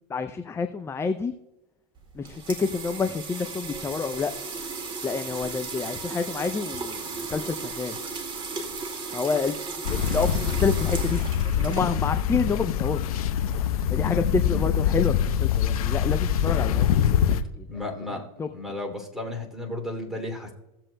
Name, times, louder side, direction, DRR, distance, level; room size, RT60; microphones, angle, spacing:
voice 1, 0.1-1.3 2.1-4.3 5.0-8.0 9.1-9.5 9.9-11.2 11.6-13.0 13.9-16.9 17.6-17.7 18.4-18.5, left 5 dB, 15° left, 8 dB, 0.5 m, -28 dB
sound 1, 2.0-12.3, right 4 dB, 25° right, 2.0 m, -35 dB
sound 2, 9.8-17.4, left 9 dB, 80° left, 0.9 m, -24 dB
voice 2, 10.0-10.5 17.7-20.5, left 2 dB, ahead, 1 dB, 2.7 m, -34 dB
16.5 x 7.5 x 2.2 m, 0.96 s
hypercardioid pair, 105°, 19 cm